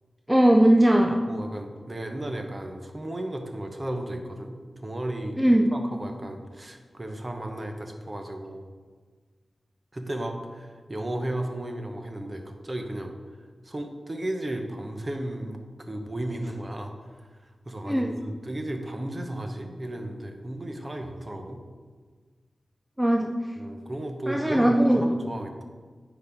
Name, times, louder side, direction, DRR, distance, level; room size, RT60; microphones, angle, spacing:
voice 1, 0.3-1.2 5.4-5.7 17.8-18.1 23.0-23.3 24.3-25.0, right 1 dB, 5° right, 2 dB, 0.4 m, -19 dB
voice 2, 1.3-5.4 5.7-8.6 9.9-13.1 13.6-17.3 17.6-21.6 23.6-25.6, right 1 dB, 30° right, 4 dB, 0.8 m, -34 dB
9.4 x 3.9 x 4.5 m, 1.5 s
wide cardioid pair, 85°, 0 cm